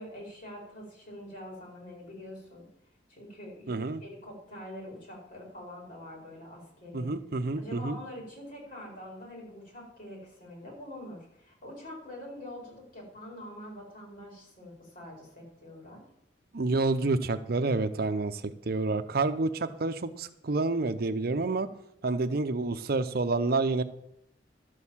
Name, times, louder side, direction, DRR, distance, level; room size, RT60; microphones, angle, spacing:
voice 1, 0.0-2.7 3.1-7.1 7.5-16.0, left 1 dB, 50° left, -1 dB, 4.8 m, -45 dB
voice 2, 3.7-4.0 6.9-8.0 16.5-21.7 22.0-23.8, right 3 dB, 60° right, 10 dB, 0.6 m, -28 dB
12.5 x 6.5 x 7.2 m, 0.76 s
head